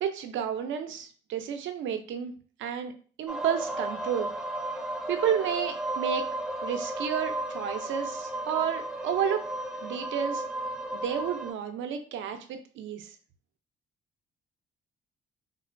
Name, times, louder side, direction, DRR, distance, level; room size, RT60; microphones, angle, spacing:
voice 1, 0.0-2.3 2.6-2.9 3.2-4.3 5.1-6.3 6.6-9.4 9.8-10.4 10.9-13.1, right 8 dB, 75° right, 7 dB, 0.5 m, -31 dB
sound 1, 3.3-11.5, right 1 dB, ahead, 0.5 m, -34 dB
3.8 x 2.1 x 2.5 m, 0.41 s
cardioid pair, 90°, 20 cm